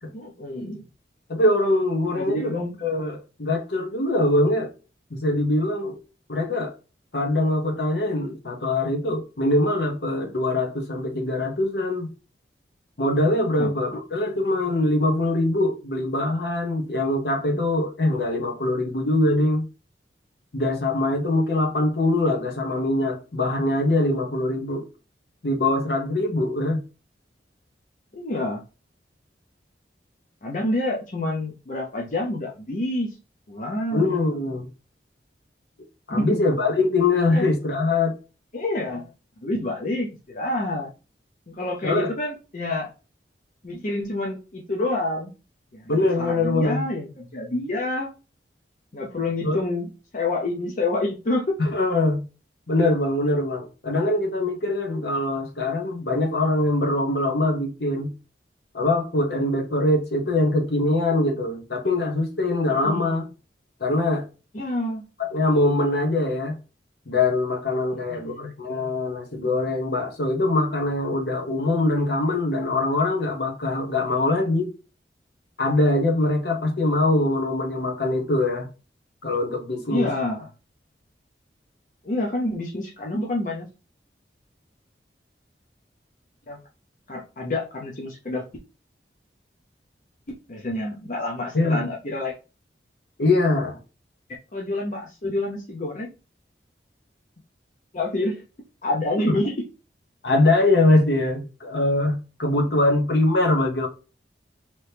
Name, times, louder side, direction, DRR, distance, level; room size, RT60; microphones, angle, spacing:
voice 1, 0.1-0.9 2.1-2.7 13.6-13.7 28.1-28.6 30.4-33.2 33.5-34.2 36.1-36.4 37.3-37.5 38.5-39.1 39.4-40.9 41.5-42.9 43.6-45.3 45.7-48.1 48.9-49.9 50.1-51.7 62.7-63.2 64.5-65.0 67.9-68.5 79.9-80.5 82.0-83.7 86.5-86.6 87.1-88.4 90.5-92.3 94.5-96.1 97.9-98.4 98.8-99.5, left 2 dB, 45° left, 0.6 m, -28 dB
voice 2, 1.3-4.7 5.1-6.0 6.3-6.7 7.1-12.1 13.0-19.6 20.5-24.9 25.4-26.8 33.9-34.7 36.1-38.1 41.8-42.1 45.9-46.8 49.4-49.6 51.6-52.2 52.7-58.1 58.7-63.2 63.8-64.3 65.2-66.5 67.1-74.7 75.6-78.7 79.2-80.1 91.5-91.8 93.2-93.8 99.3-99.4 100.2-103.9, left 2 dB, 65° left, 0.9 m, -23 dB
3.0 x 2.8 x 3.3 m
head